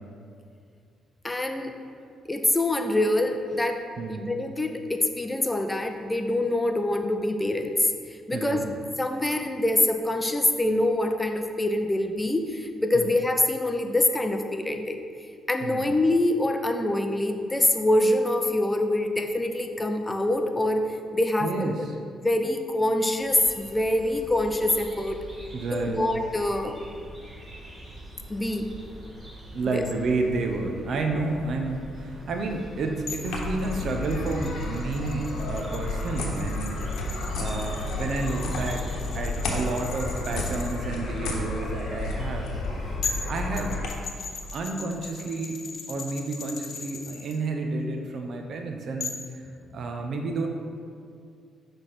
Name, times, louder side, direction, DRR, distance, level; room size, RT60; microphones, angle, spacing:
voice 1, 1.2-1.7 2.3-8.6 9.0-15.0 15.5-21.7 22.2-25.2 25.7-26.8 28.3-28.7 29.7-29.8, left 1 dB, 15° left, 5 dB, 0.5 m, -25 dB
voice 2, 4.0-4.3 8.3-8.7 12.9-13.2 15.6-15.9 21.4-22.0 25.5-26.1 29.5-36.8 37.4-42.5 43.3-43.8 44.5-45.6 45.9-49.4 49.7-50.5, right 3 dB, 60° right, 3 dB, 0.6 m, -30 dB
sound 1, 23.2-43.0, right 1 dB, 20° right, 1.5 m, -42 dB
sound 2, 33.1-40.8 42.6-42.7 43.0-47.4 49.0-49.3, left 5 dB, 60° left, 0.6 m, -39 dB
sound 3, 33.2-43.9, left 2 dB, 85° left, 1.0 m, -31 dB
6.0 x 3.4 x 5.7 m, 2.3 s
cardioid pair, 90°, 0 cm